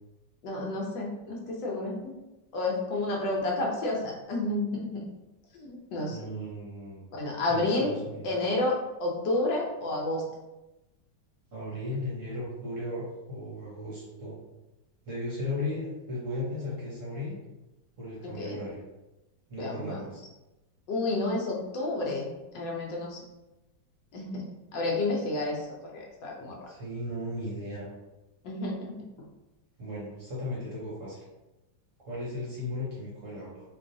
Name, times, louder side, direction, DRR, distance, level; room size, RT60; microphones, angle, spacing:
voice 1, 0.4-2.1 2.5-5.0 5.5-6.2 7.1-7.9 8.2-10.2 18.4-18.6 19.6-20.0 20.9-23.2 24.1-26.5 28.4-28.9, left 2 dB, 75° left, -2 dB, 1.3 m, -30 dB
voice 2, 6.1-7.1 7.5-8.3 11.5-14.4 15.0-17.4 18.0-18.8 19.5-20.2 26.7-27.9 29.8-31.2 32.0-33.6, left 1 dB, 50° right, -6 dB, 1.1 m, -36 dB
3.8 x 3.0 x 2.6 m, 1.0 s
omnidirectional pair, 2.1 m